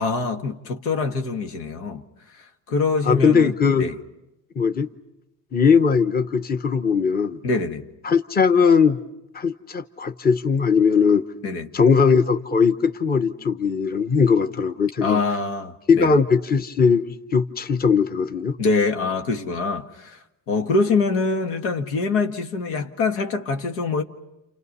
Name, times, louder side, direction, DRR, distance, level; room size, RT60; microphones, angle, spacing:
voice 1, 0.0-2.0 2.4-4.0 7.4-7.9 11.4-11.7 15.0-16.2 18.6-20.2 20.5-24.0, left 3 dB, 90° left, 1.9 m, -24 dB
voice 2, 3.0-3.9 4.6-4.9 5.5-7.4 8.0-9.0 9.3-11.2 11.7-15.2 15.9-18.6, left 5 dB, 20° left, 1.0 m, -19 dB
29.5 x 28.5 x 5.5 m
supercardioid pair, 105°, 46 cm